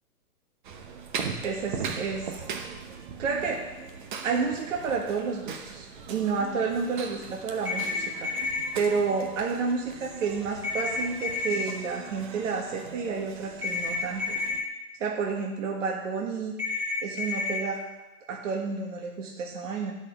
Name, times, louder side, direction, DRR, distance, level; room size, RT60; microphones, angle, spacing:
sound 1, 0.6-14.6, right 6 dB, 30° right, 0.9 m, -40 dB
voice 1, 1.4-2.4 3.2-3.7 4.2-8.3 8.7-14.4 15.0-16.5 17.0-17.8 18.3-19.9, right 5 dB, 55° right, 0 dB, 1.7 m, -30 dB
sound 2, 7.7-8.7 10.6-11.6 13.6-14.6 16.6-17.6, left 4 dB, 5° right, 1.1 m, -30 dB
10.5 x 5.8 x 6.4 m, 1.0 s
hypercardioid pair, 155°, 46 cm